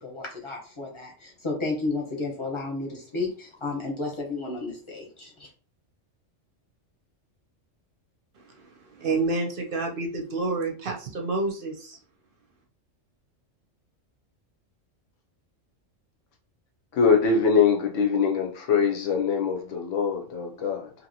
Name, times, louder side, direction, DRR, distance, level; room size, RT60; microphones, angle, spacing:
voice 1, 0.0-5.5, left 3 dB, 25° left, 0.9 m, -32 dB
voice 2, 8.4-12.0, right 3 dB, 55° right, 0.7 m, -29 dB
voice 3, 16.9-20.9, left 5 dB, 75° left, 0.9 m, -23 dB
2.8 x 2.7 x 2.7 m
omnidirectional pair, 1.3 m